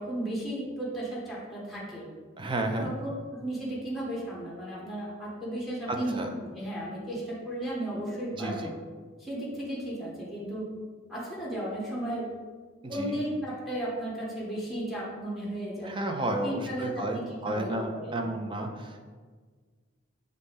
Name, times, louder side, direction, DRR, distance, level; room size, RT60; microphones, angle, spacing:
voice 1, 0.0-2.0 2.8-8.7 9.2-10.7 11.1-12.3 12.9-15.9 16.4-18.3, right 1 dB, ahead, -6 dB, 1.0 m, -34 dB
voice 2, 2.4-2.9 5.9-6.3 8.4-8.7 12.9-13.2 15.8-19.1, right 1 dB, 25° right, 4 dB, 0.4 m, -32 dB
5.3 x 2.6 x 3.5 m, 1.5 s
head